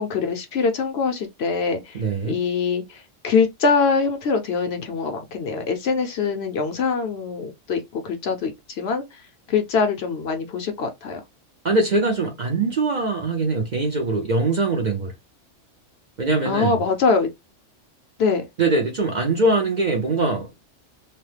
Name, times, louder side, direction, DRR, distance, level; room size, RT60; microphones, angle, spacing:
voice 1, 0.0-9.2 9.5-11.2 16.5-17.3 18.2-18.4, left 5 dB, 65° left, 0.8 m, -23 dB
voice 2, 1.9-2.4 11.6-15.1 16.2-16.8 18.6-20.5, right 3 dB, 50° right, 0.6 m, -22 dB
2.9 x 2.0 x 3.1 m
omnidirectional pair, 1.3 m